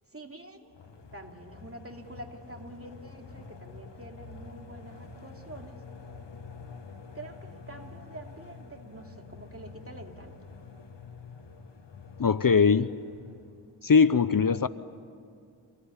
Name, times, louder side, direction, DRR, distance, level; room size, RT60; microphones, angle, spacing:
voice 1, 0.1-0.7 1.1-5.8 7.1-10.3, right 2 dB, 30° right, 3 dB, 2.8 m, -46 dB
sound 1, 0.7-13.8, left 4 dB, 80° left, 1.3 m, -47 dB
voice 2, 12.2-12.9 13.8-14.7, left 5 dB, 50° left, 15 dB, 0.7 m, -21 dB
28.5 x 18.5 x 9.8 m, 2.4 s
wide cardioid pair, 40°, 42 cm